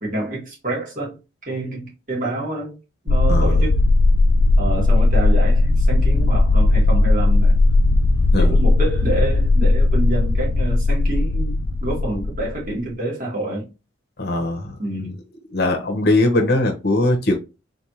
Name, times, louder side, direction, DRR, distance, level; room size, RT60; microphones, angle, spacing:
voice 1, 0.0-1.2 1.5-2.8 3.0-3.8 4.6-7.6 8.4-13.7 14.8-15.2, right 1 dB, 40° right, 2.2 m, -27 dB
sound 1, 3.1-12.7, left 2 dB, 70° left, 0.4 m, -17 dB
voice 2, 3.3-3.6 8.3-8.5 14.2-14.7 15.5-17.3, left 2 dB, 50° left, 0.9 m, -20 dB
3.9 x 3.5 x 2.9 m
head